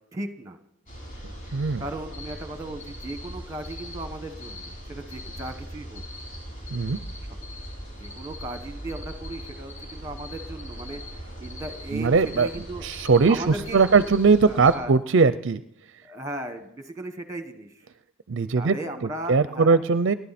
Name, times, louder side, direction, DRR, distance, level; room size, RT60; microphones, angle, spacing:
voice 1, 0.1-0.6 1.8-6.0 8.0-12.9 13.3-14.1 14.4-14.9 16.0-17.9 18.6-19.8, right 1 dB, 15° right, 8 dB, 1.4 m, -37 dB
sound 1, 0.9-14.7, equal, 40° left, 6.8 m, -39 dB
voice 2, 1.5-1.8 6.7-7.0 11.9-12.5 12.8-13.4 13.7-15.6 18.3-18.8 19.3-20.1, right 4 dB, 60° right, 13 dB, 0.5 m, -20 dB
30.0 x 11.5 x 4.3 m, 0.79 s
head